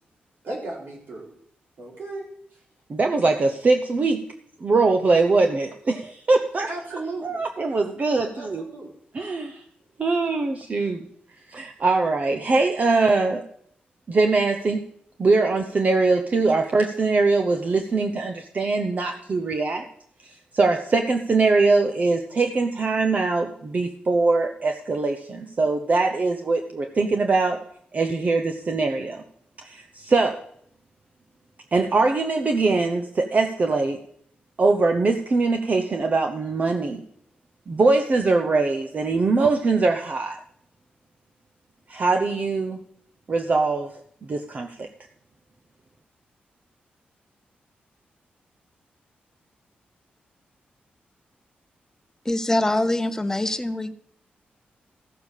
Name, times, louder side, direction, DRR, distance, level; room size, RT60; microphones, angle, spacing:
voice 1, 0.4-1.3 1.8-2.2 6.7-7.4 8.4-8.5 8.7-8.9, right 2 dB, 70° right, 4.3 m, -34 dB
voice 2, 2.9-4.2 4.6-8.7 9.1-9.6 10.0-11.0 11.5-13.4 14.1-14.8 15.2-19.8 20.5-27.6 27.9-29.2 29.6-30.4 31.7-34.0 34.6-37.0 37.7-40.4 41.9-42.8 43.3-43.9 44.3-44.9, right 3 dB, 45° right, 0.9 m, -22 dB
voice 3, 52.2-53.9, left 1 dB, 15° left, 0.8 m, -24 dB
14.5 x 6.9 x 6.5 m
cardioid pair, 90°, 3 cm